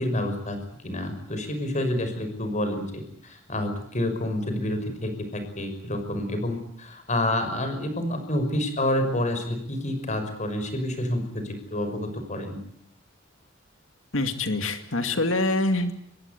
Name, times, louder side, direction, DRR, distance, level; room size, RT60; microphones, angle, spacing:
voice 1, 0.0-12.6, left 1 dB, 40° left, 8 dB, 6.0 m, -28 dB
voice 2, 14.1-15.9, left 2 dB, 80° left, 7 dB, 2.4 m, -25 dB
26.0 x 21.0 x 8.4 m, 0.69 s
head